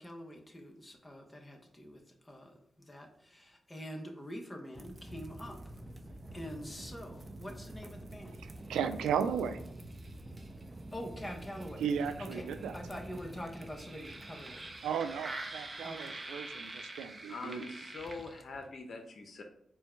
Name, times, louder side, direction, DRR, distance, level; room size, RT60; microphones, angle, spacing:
voice 1, 0.0-5.6 6.3-8.4 10.9-11.9 12.2-12.5 12.7-14.6 15.8-16.2, equal, 25° left, 2 dB, 0.9 m, -45 dB
sound 1, 4.8-18.7, right 2 dB, 35° right, 0.6 m, -46 dB
voice 2, 8.4-9.6 11.8-12.8 14.8-17.7, right 7 dB, 90° right, 9 dB, 0.3 m, -35 dB
voice 3, 17.3-19.4, left 3 dB, 65° left, 4 dB, 0.7 m, -43 dB
4.4 x 2.2 x 4.3 m, 0.72 s
supercardioid pair, 45°, 0 cm